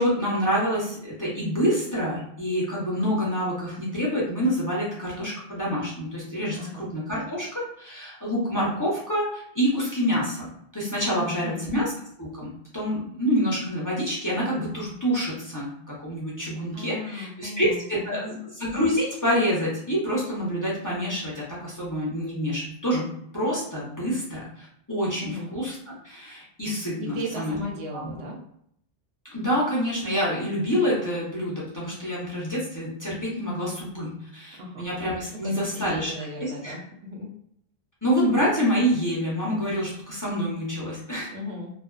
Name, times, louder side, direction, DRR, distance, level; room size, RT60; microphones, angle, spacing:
voice 1, 0.0-10.5 10.7-11.9 12.2-12.5 12.7-18.3 18.6-23.0 23.3-27.5 27.9-28.1 29.3-36.1 36.4-36.7 38.0-41.3, equal, 20° left, -7 dB, 0.6 m, -27 dB
voice 2, 6.5-6.9 11.1-11.8 16.7-18.4 25.2-25.5 27.0-28.4 34.6-34.9 35.3-37.3 41.3-41.7, equal, 90° right, -1 dB, 0.9 m, -36 dB
2.4 x 2.3 x 2.2 m, 0.69 s
omnidirectional pair, 1.0 m